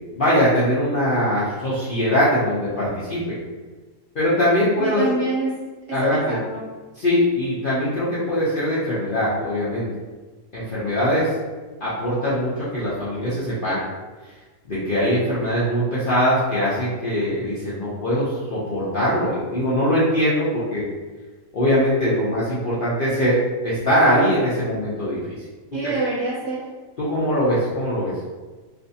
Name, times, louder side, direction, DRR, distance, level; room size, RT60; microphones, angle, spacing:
voice 1, 0.1-3.4 4.1-5.0 5.9-6.4 6.9-9.9 10.5-11.3 11.8-13.8 14.6-20.8 21.5-23.4 23.6-25.4 25.8-25.9 27.0-28.1, equal, 65° left, -10 dB, 0.5 m, -21 dB
voice 2, 4.8-5.5 6.0-6.6 25.7-26.6, right 3 dB, 60° right, -8 dB, 0.9 m, -26 dB
2.6 x 2.5 x 2.6 m, 1.3 s
omnidirectional pair, 1.7 m